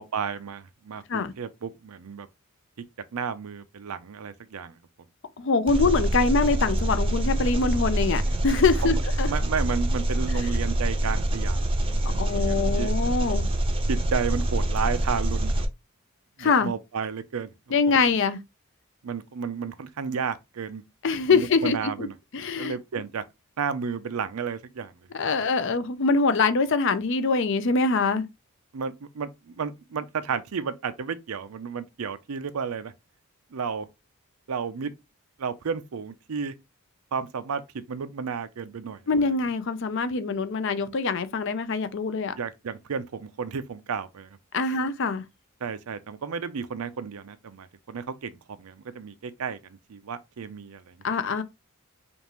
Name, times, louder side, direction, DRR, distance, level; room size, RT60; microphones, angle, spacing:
voice 1, 0.0-2.3 3.1-4.8 8.8-9.0 9.3-12.9 13.9-15.7 16.4-17.5 19.0-20.8 21.3-22.1 22.6-23.2 23.6-24.9 25.4-25.5 28.7-32.9 33.5-33.9 34.5-34.9 35.4-36.6 37.1-39.3 42.4-44.4 45.6-48.3 48.6-51.0, right 6 dB, 85° right, 0.5 m, -32 dB
voice 2, 5.4-9.3 12.1-13.5 16.4-16.7 17.7-18.4 21.0-22.1 22.3-22.7 25.1-28.2 39.1-42.3 44.5-45.2 51.0-51.4, left 4 dB, 55° left, 0.5 m, -24 dB
Engine, 5.7-15.7, right 1 dB, 25° right, 0.6 m, -25 dB
5.2 x 2.5 x 3.0 m
head